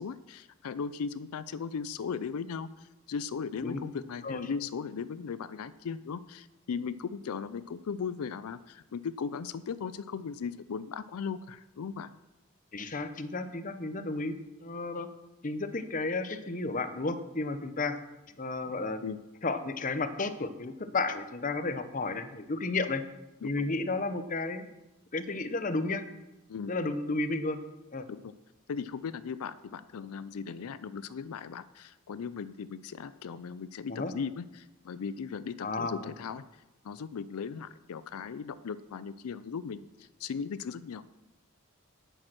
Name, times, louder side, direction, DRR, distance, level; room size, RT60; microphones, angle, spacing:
voice 1, 0.0-12.1 19.0-19.2 23.4-23.6 26.5-26.7 28.1-28.3 28.7-36.4 36.8-41.1, left 6 dB, 85° left, 15 dB, 0.4 m, -37 dB
voice 2, 12.7-15.1 15.4-18.0 18.4-19.0 19.4-23.0 23.4-24.7 25.1-26.0 26.7-27.6 27.9-28.0 33.9-34.1 35.6-36.1, left 3 dB, 35° left, 10 dB, 0.7 m, -32 dB
9.1 x 8.6 x 6.1 m, 1.0 s
head